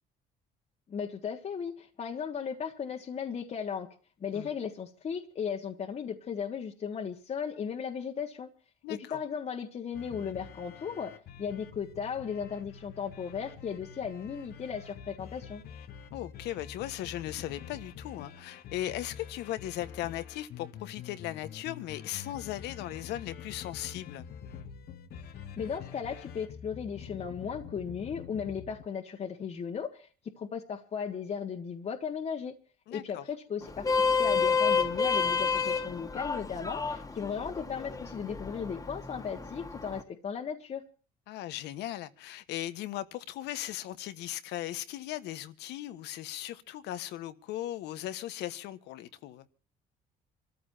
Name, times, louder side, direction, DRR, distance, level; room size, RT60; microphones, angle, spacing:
voice 1, 0.9-3.9 4.2-8.5 8.9-15.6 25.6-30.1 30.4-32.5 32.9-40.8, left 7 dB, 40° left, 1.6 m, -36 dB
voice 2, 8.8-9.2 16.1-24.3 32.9-33.2 41.3-49.4, left 13 dB, 85° left, 1.3 m, -38 dB
sound 1, 9.9-28.8, left 7 dB, 65° left, 1.4 m, -46 dB
Vehicle horn car horn honking, 33.6-40.0, left 5 dB, 20° left, 1.8 m, -30 dB
27.0 x 14.0 x 2.8 m
cardioid pair, 110°, 17 cm